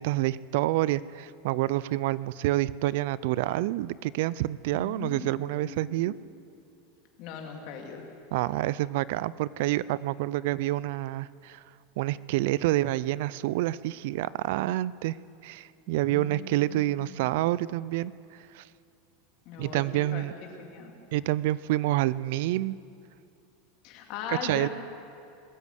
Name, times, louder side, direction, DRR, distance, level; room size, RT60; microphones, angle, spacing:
voice 1, 0.0-6.1 8.3-11.6 12.0-15.2 15.4-18.1 18.5-18.6 19.6-20.3 21.1-22.8 24.3-24.7, right 16 dB, 70° right, 20 dB, 0.3 m, -28 dB
voice 2, 4.7-6.2 7.2-8.0 15.9-17.2 19.5-20.3 20.6-20.9 23.8-24.7, left 6 dB, 55° left, 2 dB, 2.6 m, -40 dB
20.5 x 8.3 x 8.0 m, 2.5 s
supercardioid pair, 125°, 0 cm